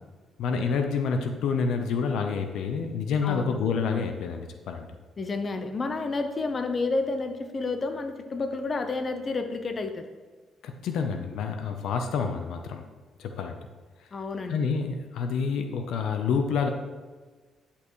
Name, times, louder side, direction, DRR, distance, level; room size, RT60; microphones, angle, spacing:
voice 1, 0.4-4.9 10.6-12.8 13.2-13.6 14.5-16.7, left 5 dB, 80° left, 5 dB, 0.8 m, -28 dB
voice 2, 5.2-10.0 14.1-14.6, left 3 dB, 35° left, 7 dB, 0.8 m, -30 dB
10.5 x 5.7 x 3.2 m, 1.4 s
cardioid pair, 90°, 0 cm